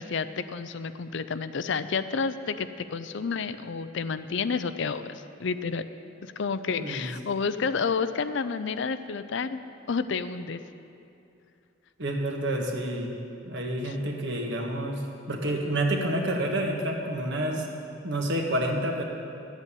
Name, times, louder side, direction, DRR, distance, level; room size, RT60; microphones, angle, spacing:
voice 1, 0.0-5.9 6.2-9.6 9.9-10.6 13.8-14.0, left 5 dB, 60° left, 12 dB, 0.5 m, -30 dB
voice 2, 6.8-7.1 12.0-13.1 13.4-17.7 18.0-19.0, right 1 dB, 60° right, 1 dB, 1.7 m, -29 dB
12.5 x 8.2 x 8.5 m, 2.7 s
head